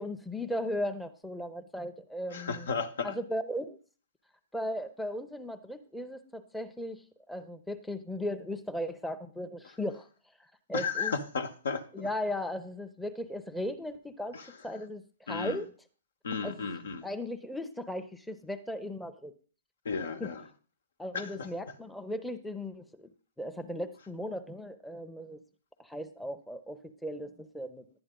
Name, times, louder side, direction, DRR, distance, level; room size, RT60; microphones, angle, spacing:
voice 1, 0.0-2.7 3.0-3.8 4.5-10.1 10.7-11.1 11.9-15.7 16.4-16.6 17.0-19.3 20.2-20.3 21.0-23.1 23.4-25.4 25.8-27.8, left 1 dB, 5° left, 0.7 m, -37 dB
voice 2, 2.3-3.2 10.7-12.1 14.3-14.5 15.3-15.6 16.2-17.1 19.8-20.4 21.1-21.5, left 5 dB, 70° left, 1.1 m, -34 dB
11.0 x 8.8 x 3.7 m
figure-of-eight pair, 120°, 0 cm